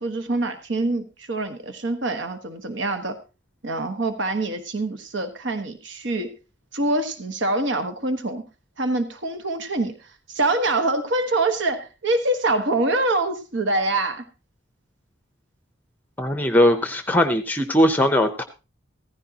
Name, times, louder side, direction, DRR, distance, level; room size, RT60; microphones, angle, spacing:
voice 1, 0.0-3.2 3.6-6.3 6.7-8.4 8.8-14.2, right 2 dB, 65° right, 7 dB, 1.3 m, -25 dB
voice 2, 16.2-18.4, left 1 dB, 10° left, 9 dB, 0.6 m, -19 dB
16.0 x 14.5 x 2.8 m, 0.30 s
head